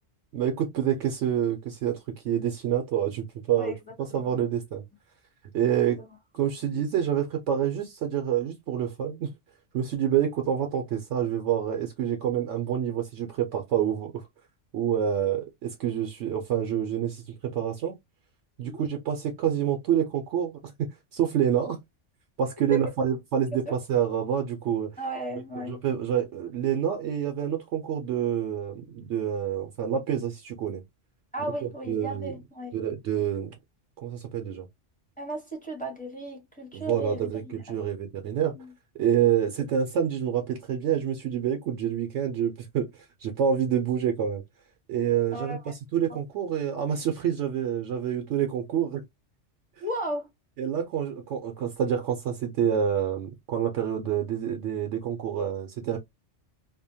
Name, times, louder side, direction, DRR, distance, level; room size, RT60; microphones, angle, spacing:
voice 1, 0.3-4.8 5.5-6.0 6.3-9.3 9.7-14.2 14.7-18.0 18.6-21.8 22.4-24.9 25.7-30.8 31.9-32.3 32.7-33.5 34.0-34.7 36.7-38.6 39.0-44.4 44.9-45.6 45.9-49.0 50.6-56.0, right 9 dB, 70° right, 0.8 m, -27 dB
voice 2, 4.1-4.4 5.6-6.1 6.7-6.8 18.6-18.8 22.7-22.8 23.7-23.8 25.0-25.8 31.3-32.8 35.2-37.6 38.5-38.7 45.3-45.7 49.8-50.3, right 1 dB, 5° left, 0.9 m, -35 dB
2.7 x 2.1 x 2.6 m
omnidirectional pair, 1.3 m